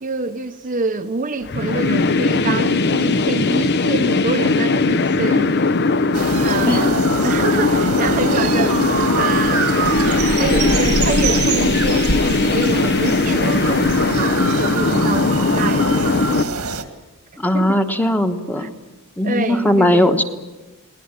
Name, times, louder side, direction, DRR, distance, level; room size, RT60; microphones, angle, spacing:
voice 1, 0.0-5.6 6.4-9.7 10.4-16.3 17.5-17.8 18.6-18.8 19.2-20.2, right 3 dB, 35° right, 0.8 m, -26 dB
sound 1, 1.5-16.4, left 3 dB, 50° left, 0.8 m, -19 dB
sound 2, 6.1-16.8, right 4 dB, 80° right, 1.8 m, -25 dB
voice 2, 17.4-18.7 19.2-20.2, left 1 dB, 10° left, 1.2 m, -18 dB
21.0 x 19.0 x 8.9 m
head